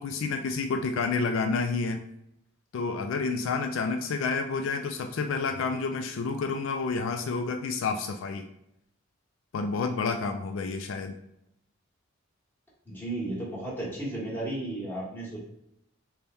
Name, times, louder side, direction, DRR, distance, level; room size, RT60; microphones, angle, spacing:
voice 1, 0.0-2.0 2.7-8.5 9.5-11.1, left 4 dB, 70° left, 5 dB, 0.3 m, -29 dB
voice 2, 12.8-15.4, right 1 dB, 10° left, -6 dB, 1.1 m, -34 dB
3.4 x 2.2 x 4.0 m, 0.79 s
head